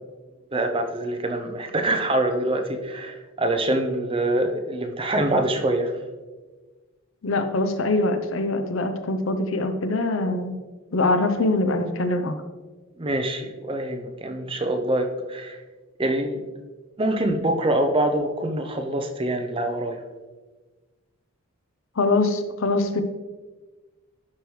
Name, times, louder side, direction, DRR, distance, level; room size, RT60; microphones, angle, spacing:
voice 1, 0.5-5.9 13.0-15.6 16.0-16.5 17.0-20.0, right 1 dB, 25° right, 4 dB, 0.6 m, -25 dB
voice 2, 7.2-10.6 10.9-12.4 22.0-23.0, left 2 dB, 65° left, 8 dB, 0.7 m, -23 dB
11.5 x 4.7 x 3.2 m, 1.3 s
head